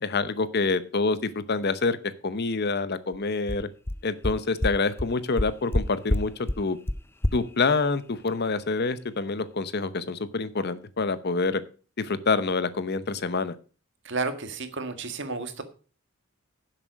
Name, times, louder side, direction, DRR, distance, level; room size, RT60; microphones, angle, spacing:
voice 1, 0.0-3.7 4.0-6.8 7.3-11.6 12.0-13.6, left 4 dB, 50° left, 14 dB, 0.8 m, -27 dB
sound 1, 3.1-3.2 3.5-3.6 3.9-4.0 4.2-4.3 4.6-4.7 5.0-5.1 5.4-5.8 6.1-6.2 6.5-6.6 6.9-7.0 7.2-7.3, left 1 dB, 10° left, 0.5 m, -24 dB
voice 2, 14.0-15.6, right 3 dB, 60° right, 8 dB, 1.7 m, -31 dB
11.0 x 7.5 x 5.2 m, 0.38 s
head